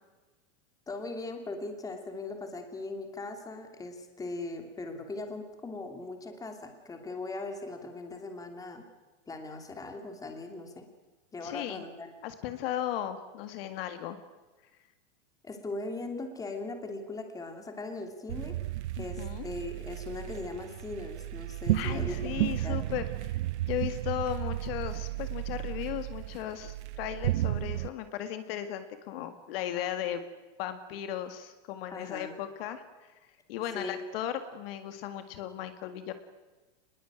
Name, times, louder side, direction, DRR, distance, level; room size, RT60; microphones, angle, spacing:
voice 1, 0.9-8.8 9.3-10.9 11.3-12.1 15.4-18.5 19.0-22.8 31.9-32.3 33.7-34.0, left 2 dB, 10° left, 5 dB, 2.8 m, -39 dB
voice 2, 11.4-11.8 12.2-14.2 19.0-19.5 21.7-23.4 23.7-30.2 30.6-33.2 33.5-36.1, left 11 dB, 50° left, 9 dB, 2.1 m, -36 dB
sound 1, 18.3-27.9, right 15 dB, 65° right, 0.8 m, -33 dB
25.5 x 21.0 x 9.1 m, 1.2 s
supercardioid pair, 160°, 37 cm